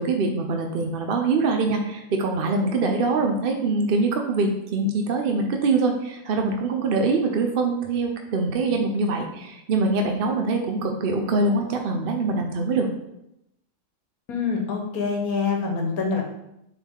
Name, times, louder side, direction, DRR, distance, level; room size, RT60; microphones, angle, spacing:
voice 1, 0.0-12.9, right 3 dB, 55° right, 3 dB, 0.7 m, -24 dB
voice 2, 14.3-16.2, left 5 dB, 85° left, 2 dB, 1.5 m, -25 dB
7.0 x 3.8 x 3.6 m, 0.84 s
omnidirectional pair, 1.5 m